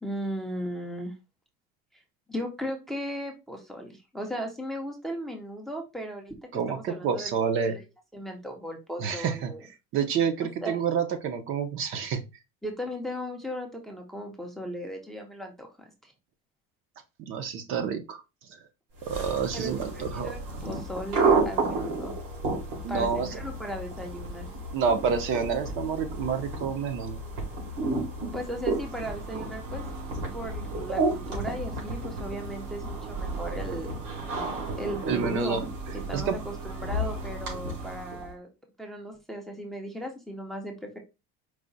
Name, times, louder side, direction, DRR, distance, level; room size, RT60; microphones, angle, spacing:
voice 1, 0.0-1.1 2.3-7.8 8.1-9.6 10.6-10.8 12.6-16.1 19.5-22.1 22.9-24.5 28.3-29.9 30.3-34.0 34.8-35.6 36.1-38.5 38.8-41.0, equal, ahead, 2 dB, 0.5 m, -36 dB
voice 2, 6.5-7.8 9.0-9.5 9.9-12.2 17.3-18.2 18.5-18.6 19.1-20.3 22.8-23.3 24.7-27.2 35.1-35.6 36.1-36.4, right 6 dB, 45° right, 8 dB, 0.6 m, -28 dB
sound 1, 19.0-38.3, right 3 dB, 90° right, 2.3 m, -32 dB
4.7 x 2.1 x 3.9 m, 0.26 s
cardioid pair, 160°, 29 cm